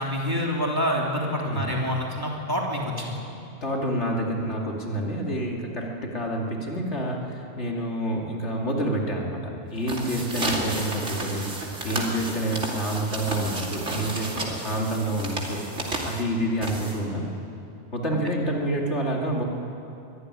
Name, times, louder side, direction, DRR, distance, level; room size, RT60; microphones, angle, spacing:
voice 1, 0.0-3.2 18.1-18.2, equal, 20° right, -2 dB, 3.1 m, -27 dB
voice 2, 3.6-11.5 11.8-15.6 16.0-17.2 17.9-19.4, right 1 dB, 70° left, -1 dB, 2.8 m, -28 dB
sound 1, 9.7-17.3, right 2 dB, 80° right, 3.1 m, -32 dB
23.0 x 14.5 x 9.9 m, 2.7 s
omnidirectional pair, 1.2 m